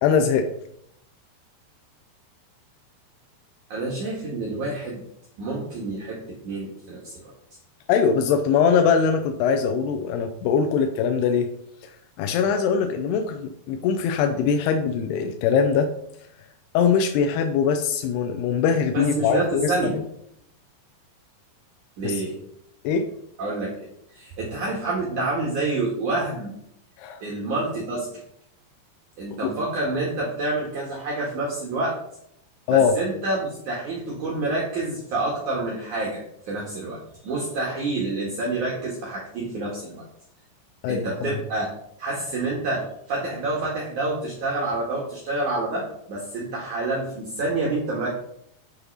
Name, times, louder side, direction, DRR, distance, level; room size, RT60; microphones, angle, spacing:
voice 1, 0.0-0.5 7.9-11.5 12.2-15.9 16.7-19.7 22.0-22.2 22.8-23.1 27.0-27.2 32.7-32.9 40.8-41.4, left 6 dB, 80° left, 6 dB, 2.6 m, -22 dB
voice 2, 3.7-5.0 5.4-7.3 18.9-20.0 22.0-22.4 23.4-23.7 24.1-26.5 27.2-28.2 29.2-32.0 32.7-40.0 40.9-41.7 42.0-48.1, right 2 dB, 55° right, -3 dB, 2.8 m, -28 dB
8.7 x 6.2 x 5.5 m, 0.72 s
omnidirectional pair, 5.0 m